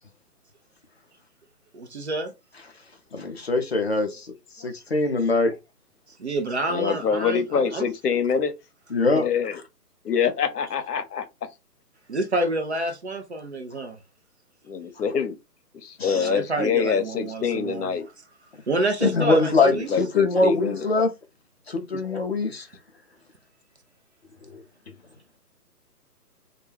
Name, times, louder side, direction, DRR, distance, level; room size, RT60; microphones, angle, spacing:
voice 1, 1.7-2.3 6.2-7.9 12.1-14.0 16.1-17.9 18.7-19.9, right 2 dB, 45° right, 0.4 m, -28 dB
voice 2, 3.1-4.2 4.6-5.5 8.9-9.3 16.0-16.3 19.0-21.1 21.7-22.7, left 3 dB, 45° left, 0.4 m, -22 dB
voice 3, 6.7-8.5 9.1-9.6 10.0-11.2 14.6-15.4 15.8-18.1 19.6-20.9 21.9-22.0, left 6 dB, 75° left, 0.7 m, -25 dB
2.2 x 2.2 x 3.0 m
hypercardioid pair, 150°, 48 cm